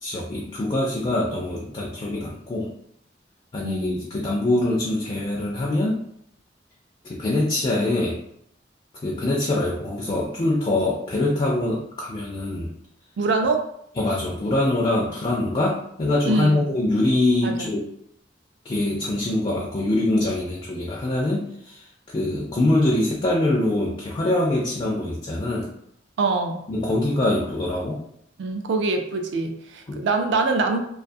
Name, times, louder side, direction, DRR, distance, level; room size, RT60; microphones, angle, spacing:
voice 1, 0.0-2.7 3.5-6.0 7.1-8.2 9.0-12.7 14.0-17.9 18.6-25.7 26.7-28.0 29.9-30.0, left 1 dB, 30° left, -2 dB, 0.3 m, -24 dB
voice 2, 3.6-4.1 13.2-13.6 16.3-16.6 17.4-17.5 26.2-26.6 28.4-30.8, right 3 dB, 65° right, 5 dB, 0.4 m, -24 dB
2.3 x 2.3 x 2.6 m, 0.72 s
head